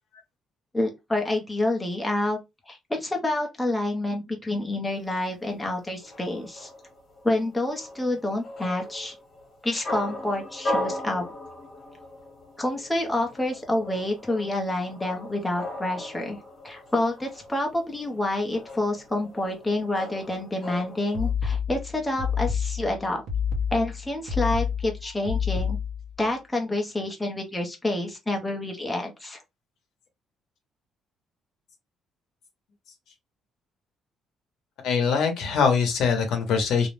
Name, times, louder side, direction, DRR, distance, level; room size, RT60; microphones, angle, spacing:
voice 1, 0.7-2.4 2.7-6.7 7.2-9.1 9.6-11.2 12.6-16.4 16.6-23.2 23.7-25.8 26.2-29.4, left 1 dB, 5° left, 0.6 m, -28 dB
sound 1, 4.9-21.3, left 1 dB, 35° left, 1.1 m, -38 dB
sound 2, 21.1-26.1, left 7 dB, 65° right, 0.8 m, -28 dB
voice 2, 34.8-36.9, left 6 dB, 70° left, 0.7 m, -23 dB
2.4 x 2.0 x 3.0 m
cardioid pair, 165°, 0 cm